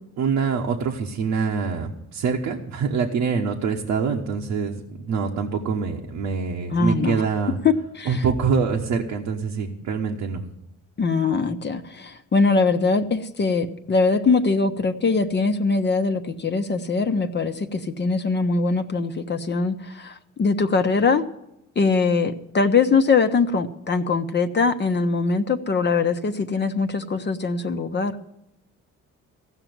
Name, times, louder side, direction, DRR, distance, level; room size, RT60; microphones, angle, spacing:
voice 1, 0.2-7.6 8.1-10.4, right 5 dB, 85° right, 0 dB, 1.2 m, -25 dB
voice 2, 6.7-7.2 7.6-8.2 11.0-21.2 21.8-28.1, left 4 dB, 35° left, 7 dB, 0.9 m, -22 dB
15.5 x 6.0 x 9.3 m, 0.85 s
cardioid pair, 90°, 30 cm